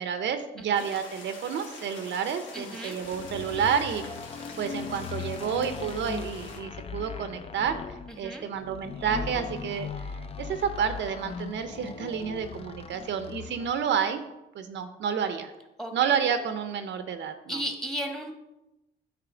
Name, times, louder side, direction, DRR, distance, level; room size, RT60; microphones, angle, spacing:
voice 1, 0.0-4.1 4.6-7.8 8.2-14.2 14.5-15.5 15.9-17.6, right 7 dB, 65° right, 9 dB, 0.6 m, -30 dB
sound 1, 0.7-6.6, left 3 dB, 75° left, 1.2 m, -45 dB
voice 2, 2.5-3.0 8.2-8.5 15.8-16.1 17.5-18.3, equal, 5° left, 3 dB, 1.2 m, -34 dB
sound 2, 3.0-13.8, left 5 dB, 30° left, 0.4 m, -39 dB
8.3 x 3.2 x 4.9 m, 0.94 s
cardioid pair, 90°, 20 cm